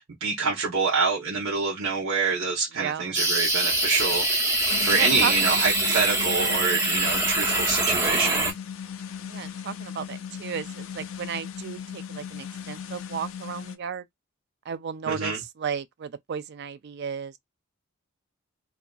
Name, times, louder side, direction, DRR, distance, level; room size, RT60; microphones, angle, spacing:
voice 1, 0.2-4.3 4.8-8.5 15.1-15.4, right 4 dB, 70° right, 0.8 m, -26 dB
voice 2, 2.7-3.1 4.9-5.3 9.3-14.1 14.7-17.4, right 7 dB, 50° right, 0.3 m, -34 dB
sound 1, 3.1-8.5, right 1 dB, 15° right, 0.7 m, -24 dB
sound 2, 4.7-13.8, left 7 dB, 65° left, 0.4 m, -37 dB
2.6 x 2.4 x 2.3 m
head